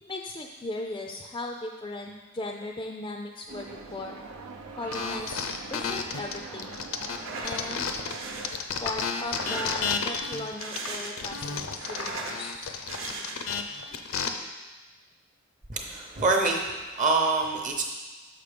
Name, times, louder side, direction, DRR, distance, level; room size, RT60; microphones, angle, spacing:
voice 1, 0.0-4.2 4.8-5.4 5.7-6.8 7.4-7.8 8.4-8.5 8.8-12.7, left 2 dB, 20° left, 2 dB, 0.4 m, -37 dB
sound 1, 3.5-8.5, right 3 dB, 90° right, 0.7 m, -42 dB
sound 2, 4.9-8.2 8.4-14.3, left 6 dB, 70° left, 0.6 m, -32 dB
sound 3, 7.1-7.7 8.1-8.6 9.2-10.1 10.5-11.4 11.7-12.4 12.9-13.6, right 2 dB, 65° right, 1.0 m, -38 dB
voice 2, 15.7-17.8, right 3 dB, 35° right, 1 dB, 0.8 m, -26 dB
6.8 x 5.9 x 5.1 m, 1.2 s
head